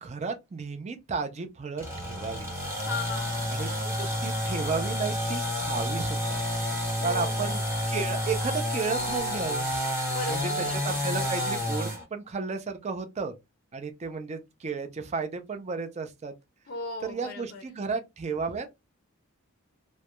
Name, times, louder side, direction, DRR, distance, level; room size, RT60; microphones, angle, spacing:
voice 1, 0.0-2.5 3.5-6.4 7.0-9.7 10.3-13.3 13.7-16.3 17.0-18.7, right 4 dB, 30° right, 0.4 m, -33 dB
sound 1, 1.8-12.0, equal, 10° right, 0.8 m, -30 dB
voice 2, 2.8-3.6 7.0-7.4 10.1-10.9 16.7-17.6, left 3 dB, 45° left, 0.5 m, -37 dB
2.3 x 2.1 x 2.8 m
head